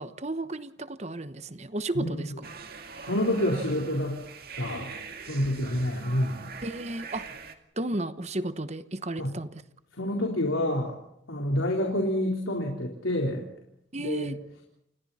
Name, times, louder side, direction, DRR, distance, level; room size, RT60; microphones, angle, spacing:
voice 1, 0.0-2.3 6.6-7.5 7.8-9.6 13.9-14.4, right 2 dB, 35° right, 12 dB, 1.0 m, -33 dB
voice 2, 1.9-2.3 3.0-4.2 4.6-4.9 5.2-6.5 9.2-9.3 10.0-10.9 11.3-13.5 13.9-14.3, left 1 dB, 85° left, 0 dB, 4.1 m, -28 dB
sound 1, 2.4-7.6, right 5 dB, 50° right, 2.2 m, -43 dB
29.5 x 29.0 x 4.3 m, 0.75 s
head